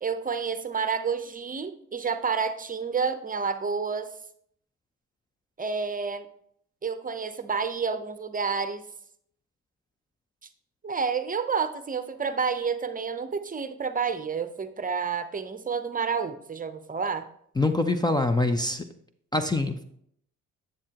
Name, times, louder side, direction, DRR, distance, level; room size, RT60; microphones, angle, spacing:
voice 1, 0.0-4.1 5.6-6.3 6.8-8.8 10.8-17.3, right 5 dB, 25° right, 10 dB, 0.8 m, -29 dB
voice 2, 17.6-18.8 19.3-19.8, left 2 dB, 15° left, 8 dB, 0.6 m, -24 dB
9.7 x 7.7 x 2.9 m, 0.67 s
cardioid pair, 90°, 30 cm